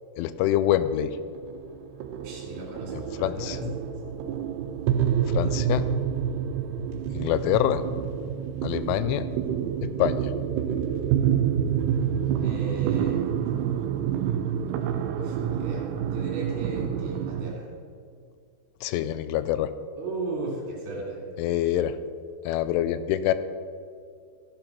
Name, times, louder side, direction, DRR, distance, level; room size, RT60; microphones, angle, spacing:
voice 1, 0.2-1.2 3.2-3.7 5.3-5.9 7.1-7.8 8.6-9.3 10.0-10.3 18.8-19.7 21.4-22.0 22.5-23.3, left 12 dB, 90° left, 13 dB, 3.0 m, -25 dB
sound 1, 0.7-17.5, right 9 dB, 90° right, 2.3 m, -28 dB
voice 2, 2.2-3.9 12.4-13.7 15.2-17.7 20.0-21.2, right 3 dB, 65° right, -3 dB, 4.3 m, -36 dB
14.0 x 7.6 x 4.4 m, 2.2 s
omnidirectional pair, 5.4 m